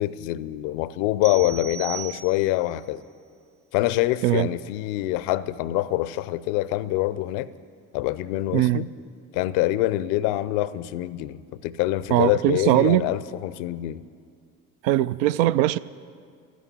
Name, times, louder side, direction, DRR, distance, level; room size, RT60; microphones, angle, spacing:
voice 1, 0.0-3.0 3.7-7.5 7.9-8.9 9.3-14.0, left 15 dB, 70° left, 0.6 m, -25 dB
sound 1, 1.2-2.8, right 9 dB, 45° right, 1.1 m, -37 dB
voice 2, 8.5-8.8 12.1-13.1 14.8-15.8, right 14 dB, 75° right, 0.5 m, -20 dB
12.5 x 9.4 x 9.9 m
hypercardioid pair, 55°, 40 cm